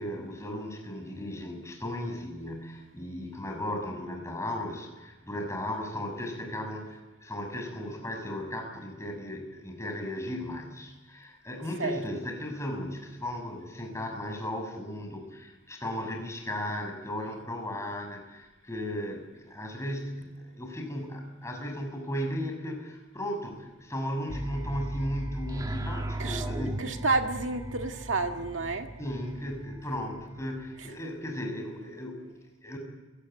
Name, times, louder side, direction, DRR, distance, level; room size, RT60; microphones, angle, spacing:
voice 1, 0.0-26.8 29.0-32.8, left 1 dB, 15° left, 3 dB, 6.6 m, -36 dB
sound 1, 24.3-31.0, right 1 dB, 20° right, 1.6 m, -37 dB
voice 2, 26.8-28.9, right 3 dB, 75° right, 4 dB, 2.0 m, -30 dB
29.5 x 18.5 x 9.2 m, 1.2 s
head